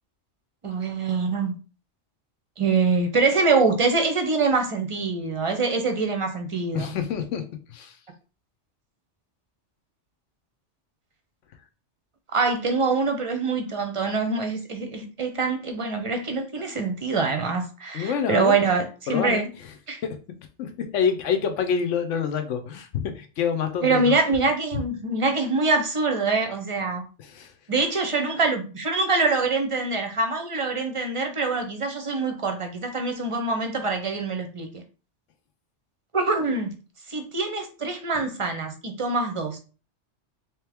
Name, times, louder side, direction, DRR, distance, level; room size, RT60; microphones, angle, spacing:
voice 1, 0.6-1.6 2.6-6.9 12.3-19.5 19.9-20.0 23.8-27.1 27.7-34.8 36.1-36.8 37.1-39.6, right 3 dB, 35° right, 0.5 m, -24 dB
voice 2, 6.7-8.0 17.9-18.6 19.1-19.4 20.0-20.2 20.6-24.1 27.2-27.5, left 7 dB, 85° left, 1.0 m, -27 dB
3.5 x 3.1 x 3.4 m
omnidirectional pair, 1.2 m